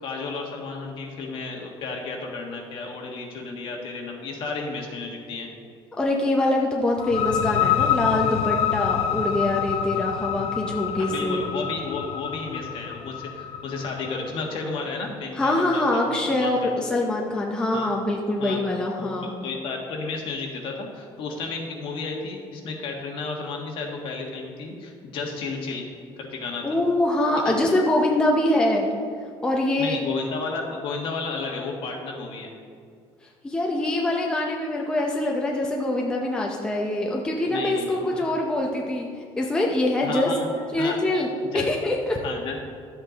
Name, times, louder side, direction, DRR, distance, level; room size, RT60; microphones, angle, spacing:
voice 1, 0.0-5.5 11.0-16.7 17.7-17.9 18.4-18.6 19.0-25.8 26.2-26.8 27.4-27.5 29.8-32.5 37.4-38.2 40.0-40.4 40.8-41.0 41.5-41.7 42.2-42.7, left 4 dB, 50° left, 1 dB, 1.6 m, -32 dB
voice 2, 6.0-11.4 15.4-19.3 26.6-28.9 29.4-30.0 33.4-39.1 39.4-40.3 40.7-41.3 41.5-42.2, left 1 dB, 10° left, -1 dB, 0.6 m, -24 dB
sound 1, 7.0-14.5, left 10 dB, 65° left, 0.5 m, -27 dB
11.5 x 7.9 x 4.0 m, 2.3 s
cardioid pair, 175°, 11 cm